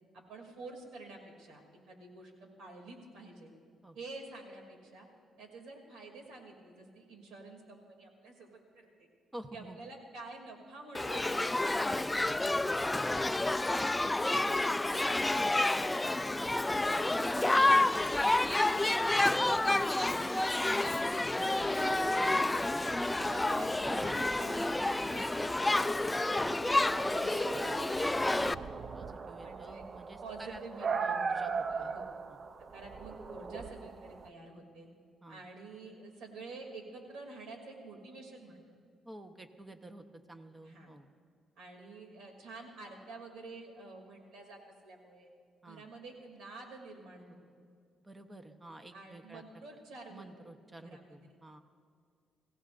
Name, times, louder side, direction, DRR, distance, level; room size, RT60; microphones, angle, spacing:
voice 1, 0.1-3.5 3.9-5.1 5.4-9.1 9.5-11.8 13.1-15.9 16.7-19.6 20.1-20.4 23.3-25.3 25.6-27.8 28.1-28.7 29.4-29.8 30.2-31.2 31.7-32.1 32.7-34.9 35.3-38.6 40.6-40.9 41.6-45.3 45.6-47.4 48.9-50.3 50.8-51.2, right 3 dB, 80° right, 2 dB, 2.8 m, -49 dB
voice 2, 9.3-9.8 11.6-12.7 16.2-16.4 19.6-23.1 28.3-28.5 28.9-31.9 32.3-32.4 35.2-35.4 39.0-41.1 45.6-45.8 48.0-49.4 50.1-51.6, right 1 dB, 20° right, 7 dB, 1.1 m, -50 dB
Shout / Human group actions, 10.9-28.5, left 2 dB, 15° left, 0.3 m, -29 dB
sound 1, 21.8-34.3, right 5 dB, 40° right, 0.5 m, -40 dB
23.0 x 16.5 x 2.6 m, 2.2 s
cardioid pair, 90°, 0 cm